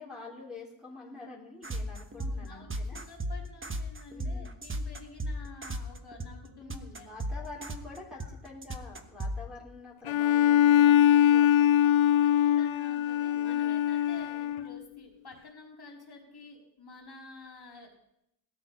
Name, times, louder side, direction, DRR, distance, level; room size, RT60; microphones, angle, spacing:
voice 1, 0.0-3.0 4.1-4.5 6.6-12.2 13.3-13.8, left 3 dB, ahead, -7 dB, 4.2 m, -47 dB
sound 1, 1.6-9.4, right 1 dB, 25° right, 1.2 m, -35 dB
voice 2, 2.1-7.5 8.2-8.4 12.2-18.1, left 3 dB, 50° left, -1 dB, 4.1 m, -50 dB
Bowed string instrument, 10.1-14.8, left 11 dB, 75° left, 0.5 m, -23 dB
18.0 x 13.0 x 5.6 m, 0.79 s
wide cardioid pair, 145°, 48 cm